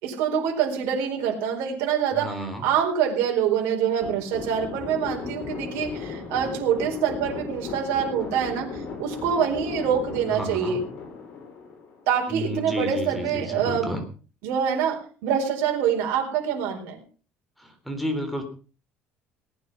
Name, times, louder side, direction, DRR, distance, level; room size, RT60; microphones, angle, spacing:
voice 1, 0.0-2.3 2.6-10.8 12.1-13.9 14.4-17.0, right 8 dB, 80° right, 1 dB, 4.4 m, -25 dB
voice 2, 2.1-2.7 10.3-10.8 12.3-14.0 17.6-18.4, equal, ahead, 4 dB, 3.5 m, -31 dB
sound 1, 4.0-12.3, left 4 dB, 50° left, 7.1 m, -36 dB
18.5 x 9.9 x 5.5 m, 0.38 s
cardioid pair, 155°, 4 cm